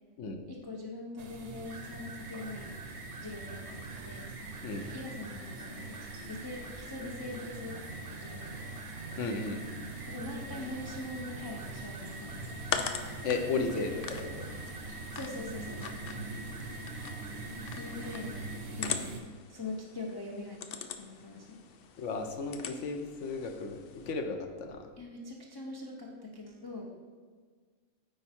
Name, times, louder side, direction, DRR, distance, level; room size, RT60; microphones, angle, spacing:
voice 1, 0.5-2.7 3.2-4.3 4.9-9.0 10.1-12.6 15.1-16.0 17.7-18.4 18.8-19.1 19.5-21.6 25.0-26.9, left 2 dB, 30° left, -2 dB, 0.4 m, -43 dB
sound 1, 1.2-19.2, right 3 dB, 55° right, 1.0 m, -43 dB
sound 2, 1.7-18.6, right 1 dB, 30° right, 0.7 m, -48 dB
voice 2, 9.2-9.6 13.2-14.5 22.0-24.9, left 4 dB, 60° left, 6 dB, 0.9 m, -34 dB
sound 3, 11.6-24.1, left 7 dB, 90° left, 0.5 m, -42 dB
8.9 x 4.5 x 4.3 m, 1.6 s
omnidirectional pair, 1.6 m